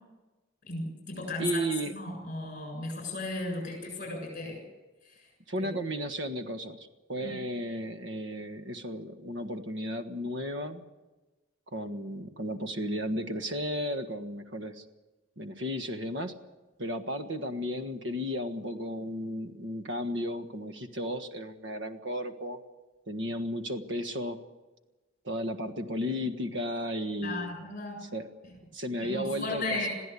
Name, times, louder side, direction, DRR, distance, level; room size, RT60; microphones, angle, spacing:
voice 1, 0.7-4.6 5.0-5.3 5.6-5.7 7.2-7.5 27.2-28.1 29.0-29.9, left 2 dB, 40° left, 2 dB, 7.3 m, -35 dB
voice 2, 1.4-1.9 5.5-10.8 11.7-14.8 15.4-16.3 16.8-22.6 23.1-24.4 25.2-27.5 28.0-28.3 28.7-29.9, equal, 65° right, 7 dB, 1.6 m, -34 dB
22.5 x 15.0 x 8.4 m, 1.2 s
head